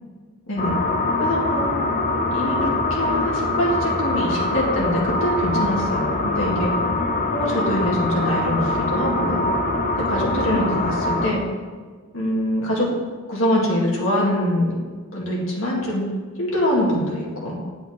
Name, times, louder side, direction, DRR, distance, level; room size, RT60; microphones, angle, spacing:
voice 1, 0.5-0.8 1.2-1.8 2.3-6.7 7.3-9.4 10.0-11.4 12.1-12.9 13.3-14.8 15.1-16.1 16.4-17.6, left 1 dB, 70° left, -4 dB, 2.0 m, -24 dB
sound 1, 0.6-11.3, left 2 dB, 40° left, 0.7 m, -23 dB
8.2 x 7.9 x 3.7 m, 1.5 s
head